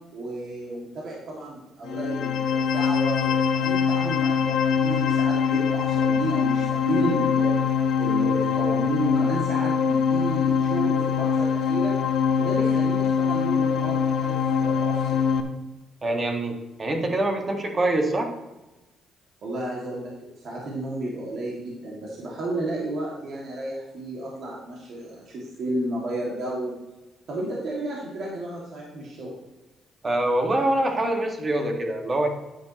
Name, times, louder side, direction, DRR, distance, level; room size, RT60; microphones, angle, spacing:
voice 1, 0.0-7.6 8.0-11.9 12.4-15.2 19.4-26.8 27.3-29.3, right 1 dB, 65° right, -4 dB, 2.3 m, -32 dB
sound 1, 1.8-15.4, left 6 dB, 70° left, 0.9 m, -23 dB
voice 2, 16.0-18.3 30.0-32.3, right 1 dB, 35° right, 3 dB, 1.8 m, -24 dB
10.0 x 9.3 x 3.1 m, 1.0 s
cardioid pair, 90°, 0 cm